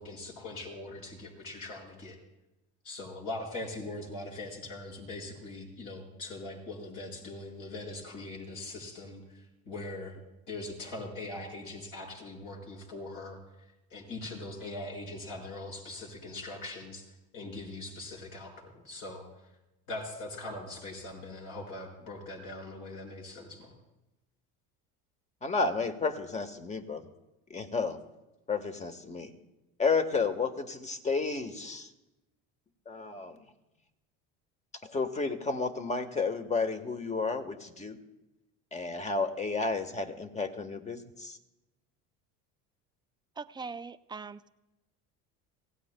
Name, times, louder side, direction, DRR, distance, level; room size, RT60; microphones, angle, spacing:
voice 1, 0.0-2.2 2.8-10.2 10.5-13.4 13.9-19.2 19.9-23.7, left 2 dB, 60° left, -1 dB, 5.7 m, -41 dB
voice 2, 25.4-27.1 27.5-28.0 28.5-29.3 29.8-31.9 32.9-33.4 34.8-38.0 38.7-41.4, left 4 dB, 20° left, 8 dB, 1.2 m, -32 dB
voice 3, 43.4-44.5, right 4 dB, 15° right, 12 dB, 0.4 m, -41 dB
26.5 x 16.5 x 2.2 m, 0.98 s
supercardioid pair, 100°, 34 cm